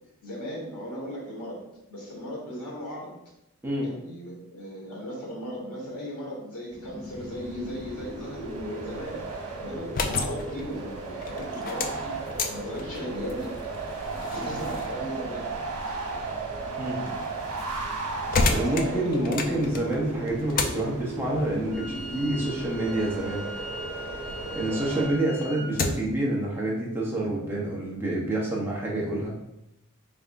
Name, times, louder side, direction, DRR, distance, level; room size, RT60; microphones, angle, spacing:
voice 1, 0.2-1.6 1.9-3.2 3.8-9.2 9.6-12.2 12.5-13.5 14.2-15.5 18.6-19.7 25.2-25.3, equal, 85° left, -3 dB, 1.4 m, -37 dB
sound 1, 6.7-25.1, right 3 dB, 85° right, 1.1 m, -35 dB
sound 2, 9.7-24.4 24.8-26.2, left 3 dB, 40° left, 0.3 m, -34 dB
voice 2, 18.5-23.5 24.5-29.3, right 1 dB, 10° right, -5 dB, 0.8 m, -28 dB
Wind instrument woodwind instrument, 21.7-25.7, equal, 65° right, 0.9 m, -41 dB
4.1 x 3.4 x 2.5 m, 0.86 s
head